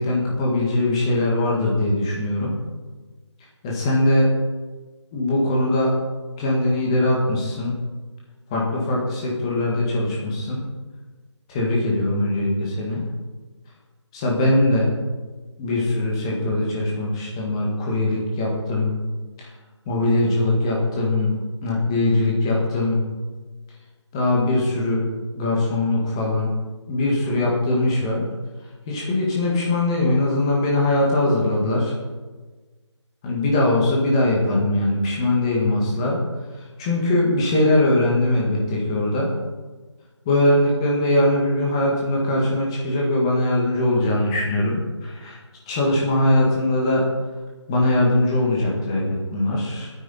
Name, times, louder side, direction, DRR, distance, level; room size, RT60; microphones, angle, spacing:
voice 1, 0.0-2.6 3.6-4.3 5.1-5.9 6.4-7.7 8.5-10.6 11.5-13.0 14.1-14.9 15.6-18.9 19.4-19.5 19.9-21.4 21.6-23.0 24.1-25.1 25.3-26.5 26.9-28.3 28.9-31.9 33.2-36.2 36.8-39.3 40.3-45.4 45.7-47.0 47.7-49.9, left 1 dB, 10° left, -3 dB, 1.8 m, -21 dB
21.5 x 9.6 x 4.3 m, 1.3 s
figure-of-eight pair, 175°, 15 cm